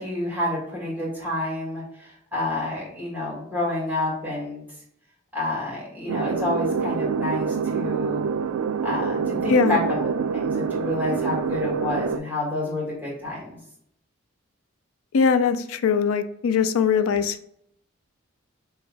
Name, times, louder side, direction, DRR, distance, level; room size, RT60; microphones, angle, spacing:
voice 1, 0.0-4.6 5.3-8.2 8.8-13.6, left 2 dB, 10° right, -5 dB, 1.4 m, -29 dB
sound 1, 6.1-12.2, right 6 dB, 85° right, 0.3 m, -26 dB
voice 2, 15.1-17.5, left 6 dB, 90° left, 11 dB, 0.4 m, -21 dB
5.1 x 2.3 x 3.3 m, 0.71 s
head